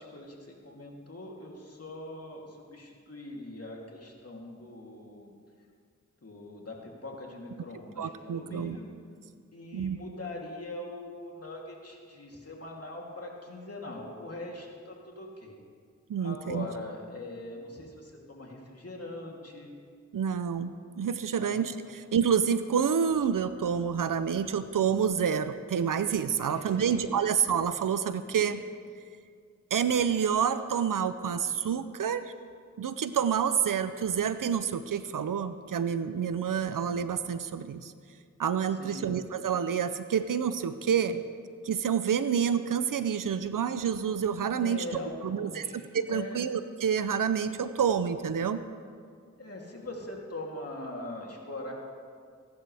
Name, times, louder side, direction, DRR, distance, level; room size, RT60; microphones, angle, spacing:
voice 1, 0.0-5.3 6.2-8.9 9.5-15.6 16.2-19.7 21.3-21.9 26.4-27.3 38.7-39.1 44.5-46.5 49.4-51.7, left 2 dB, 50° left, -2 dB, 3.1 m, -42 dB
voice 2, 8.0-8.8 9.7-10.0 16.1-16.7 20.1-28.6 29.7-32.3 32.8-37.9 38.4-41.2 41.6-48.6, right 7 dB, 85° right, 12 dB, 0.6 m, -28 dB
23.0 x 11.5 x 3.5 m, 2.1 s
cardioid pair, 45°, 32 cm